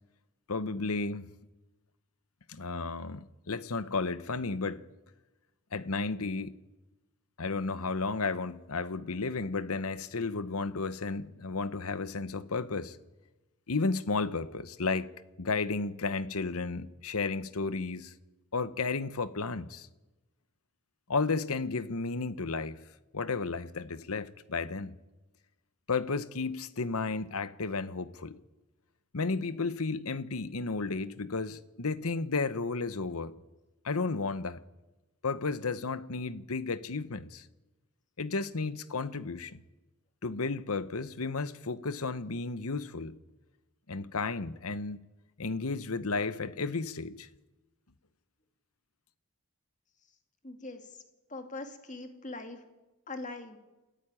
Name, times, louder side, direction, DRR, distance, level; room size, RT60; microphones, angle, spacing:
voice 1, 0.5-1.3 2.5-4.8 5.7-6.6 7.4-13.0 13.7-15.1 15.4-18.1 18.5-19.9 21.1-22.8 23.1-25.0 25.9-28.4 29.1-33.3 33.8-34.6 35.2-37.5 38.2-39.6 40.2-43.2 43.9-45.0 45.4-47.3, left 4 dB, 75° left, 1.0 m, -33 dB
voice 2, 50.4-51.0 51.3-52.6 53.1-53.6, left 2 dB, 35° left, 2.3 m, -42 dB
29.0 x 14.0 x 9.8 m
head